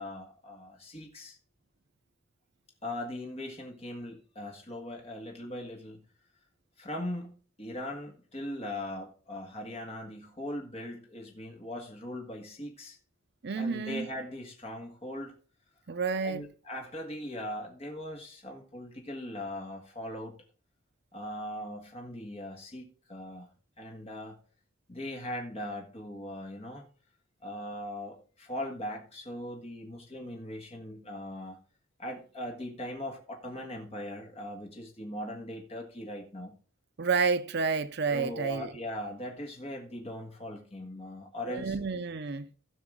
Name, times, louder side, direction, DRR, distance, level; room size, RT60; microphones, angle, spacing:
voice 1, 0.0-1.4 2.8-6.0 6.8-7.3 7.6-13.0 13.6-15.3 16.2-20.4 21.1-23.5 23.8-24.4 24.9-26.8 27.4-31.6 32.0-36.6 38.1-41.7, left 1 dB, 30° left, 1.6 m, -40 dB
voice 2, 13.4-14.1 15.9-16.5 37.0-38.7 41.4-42.5, right 5 dB, 55° right, 0.6 m, -30 dB
16.0 x 5.9 x 3.7 m
head